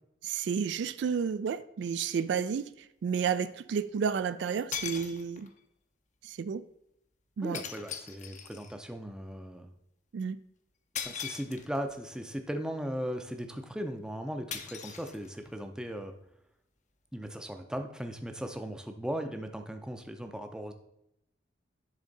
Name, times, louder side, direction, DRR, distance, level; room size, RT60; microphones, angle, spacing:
voice 1, 0.2-5.5 6.2-6.6 7.4-7.6 10.1-10.4, right 6 dB, 70° right, 0.3 m, -31 dB
sound 1, 2.0-2.1 4.1-4.2 4.7-5.6 7.5-8.8 10.9-11.9 14.5-15.6, left 8 dB, 40° left, 0.6 m, -40 dB
voice 2, 7.4-9.7 11.0-16.1 17.1-20.7, equal, 5° right, 0.5 m, -37 dB
10.5 x 3.8 x 3.9 m
head